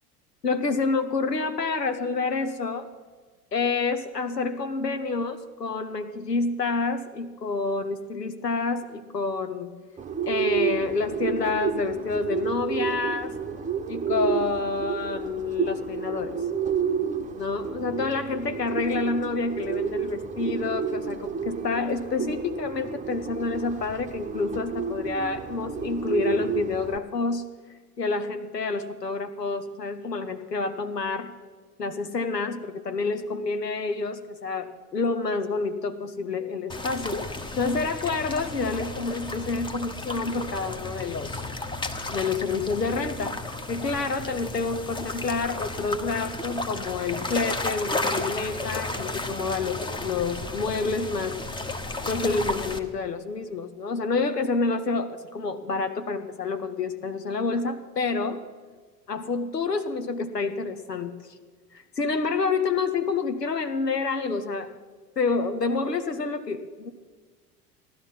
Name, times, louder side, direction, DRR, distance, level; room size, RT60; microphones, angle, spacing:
voice 1, 0.4-2.9 3.5-9.7 10.3-13.4 13.9-16.4 17.4-27.5 28.0-31.3 31.8-37.2 37.6-41.5 42.1-43.3 43.7-51.4 52.1-58.4 59.1-61.2 61.7-64.7 65.2-66.9, left 4 dB, 85° left, 10 dB, 1.1 m, -28 dB
Bird, 10.0-27.0, right 6 dB, 15° right, 0.9 m, -30 dB
sound 1, 36.7-52.8, left 2 dB, 10° left, 1.0 m, -33 dB
16.0 x 11.5 x 5.8 m, 1.4 s
figure-of-eight pair, 80°, 47 cm